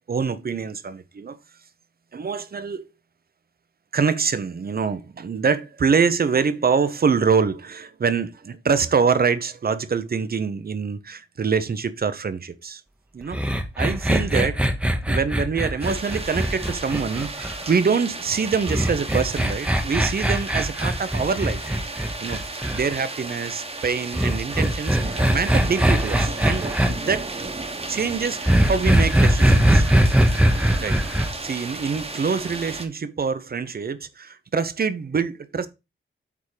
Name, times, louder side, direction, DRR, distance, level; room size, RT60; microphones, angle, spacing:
voice 1, 0.1-1.4 2.1-2.8 3.9-12.8 13.1-14.6 15.0-21.6 22.2-27.3 27.9-29.9 30.8-35.7, right 5 dB, 45° right, 0.7 m, -25 dB
sound 1, 13.3-17.7 18.7-22.8 24.1-26.9 28.5-31.3, right 1 dB, 5° right, 0.9 m, -20 dB
sound 2, 15.8-32.9, right 3 dB, 30° right, 1.2 m, -34 dB
8.4 x 3.7 x 4.9 m
wide cardioid pair, 150°, 21 cm